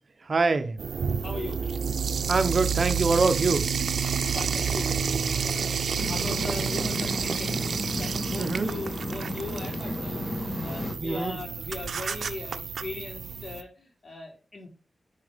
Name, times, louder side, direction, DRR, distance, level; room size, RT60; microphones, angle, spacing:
voice 1, 0.3-0.8 2.3-3.7 8.4-8.7 11.0-11.4, right 3 dB, 50° right, 0.9 m, -24 dB
sound 1, 0.8-13.6, right 6 dB, 85° right, 0.6 m, -30 dB
voice 2, 1.2-1.6 4.1-4.9 5.4-7.6 7.9-10.3 10.6-14.7, left 3 dB, 60° left, 3.8 m, -39 dB
sound 2, 6.0-10.9, left 1 dB, 35° left, 2.6 m, -33 dB
10.0 x 5.0 x 3.5 m
wide cardioid pair, 90°, 0 cm